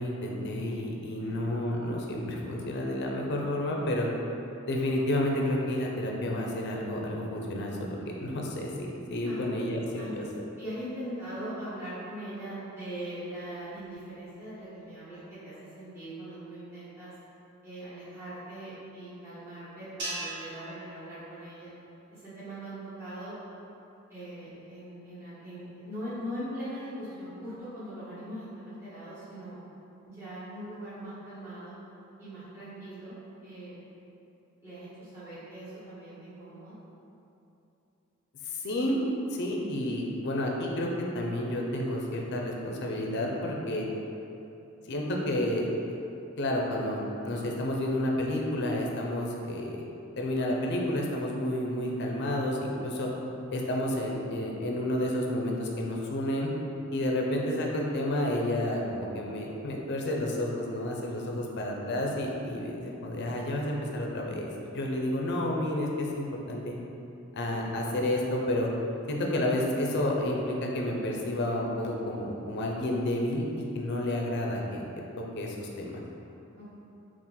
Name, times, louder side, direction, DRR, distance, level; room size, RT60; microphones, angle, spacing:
voice 1, 0.0-4.1 4.7-10.3 38.5-39.0 39.3-40.9 41.1-43.8 44.9-45.7 46.4-49.8 50.2-53.1 53.5-56.5 56.9-64.5 64.7-66.7 67.3-68.7 69.1-73.4 73.7-74.8 75.4-76.0, left 1 dB, 55° left, -1 dB, 0.5 m, -30 dB
voice 2, 10.6-17.1 17.6-21.7 22.1-23.4 24.1-29.6 30.0-31.8 32.2-33.1 33.4-33.8 34.6-36.7 76.5-76.8, right 1 dB, 15° right, -15 dB, 1.2 m, -41 dB
sound 1, 20.0-22.4, right 1 dB, 60° right, 1.0 m, -41 dB
4.2 x 2.5 x 3.7 m, 2.8 s
head